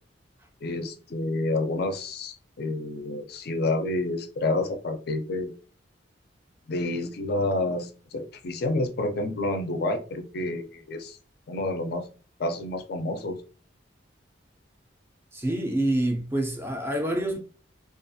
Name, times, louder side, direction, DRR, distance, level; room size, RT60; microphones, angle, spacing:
voice 1, 0.6-5.5 6.7-11.2 11.5-12.1 12.4-13.4, left 2 dB, 55° left, 0.4 m, -29 dB
voice 2, 15.3-17.4, right 1 dB, 10° right, 0.4 m, -27 dB
2.4 x 2.3 x 2.6 m
head